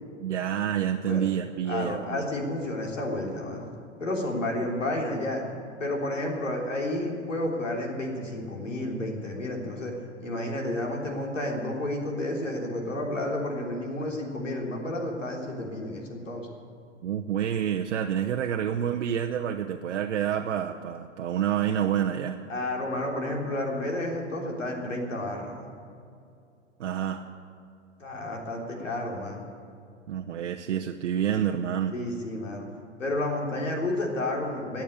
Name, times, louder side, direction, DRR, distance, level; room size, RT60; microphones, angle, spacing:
voice 1, 0.2-2.3 17.0-22.4 26.8-27.2 30.1-31.9, right 9 dB, 70° right, 3 dB, 0.9 m, -28 dB
voice 2, 1.7-3.7 4.0-5.4 5.8-9.9 10.2-16.5 22.5-25.7 28.0-29.4 31.9-32.7 33.0-34.8, left 1 dB, 85° left, 0 dB, 3.5 m, -31 dB
18.0 x 7.3 x 9.8 m, 2.5 s
hypercardioid pair, 110°, 37 cm